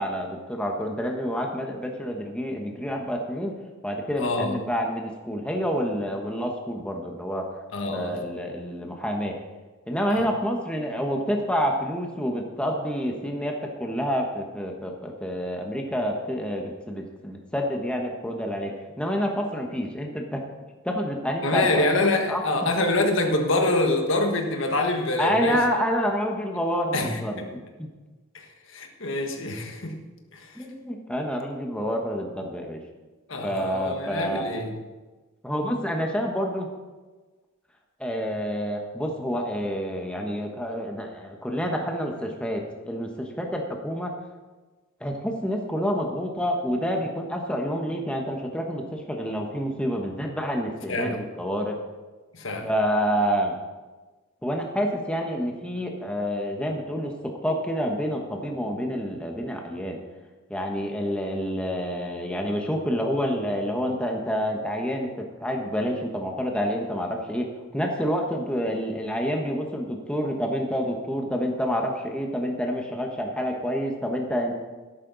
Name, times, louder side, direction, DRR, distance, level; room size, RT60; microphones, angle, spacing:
voice 1, 0.0-3.5 3.8-7.4 7.9-9.3 9.9-20.4 20.8-21.8 22.3-22.7 25.2-27.4 27.8-27.9 30.5-32.8 33.4-34.4 35.4-36.7 38.0-44.1 45.0-51.7 52.6-53.6 54.4-60.0 60.5-67.5 67.7-74.6, equal, 5° left, 1 dB, 1.2 m, -28 dB
voice 2, 4.2-4.6 7.7-8.2 10.1-10.3 21.4-25.6 26.9-27.5 28.3-30.0 30.3-30.5 33.3-34.7 50.9-51.2 52.3-52.7, left 2 dB, 65° left, 4 dB, 1.5 m, -25 dB
13.0 x 11.5 x 4.0 m, 1.3 s
head